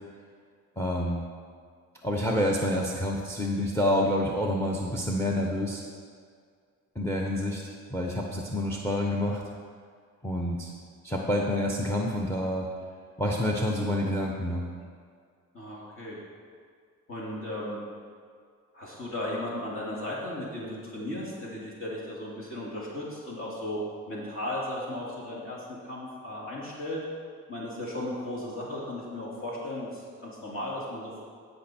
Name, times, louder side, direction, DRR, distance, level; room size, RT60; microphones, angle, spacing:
voice 1, 0.8-1.3 2.0-5.8 6.9-9.4 10.2-10.7 11.0-12.7 13.2-14.7, left 1 dB, 10° left, 0 dB, 1.0 m, -28 dB
voice 2, 15.5-16.2 17.1-17.8 18.7-23.8 24.1-27.0 27.5-31.2, left 1 dB, 45° left, -5 dB, 2.6 m, -36 dB
14.5 x 5.4 x 4.4 m, 2.1 s
cardioid pair, 90°, 30 cm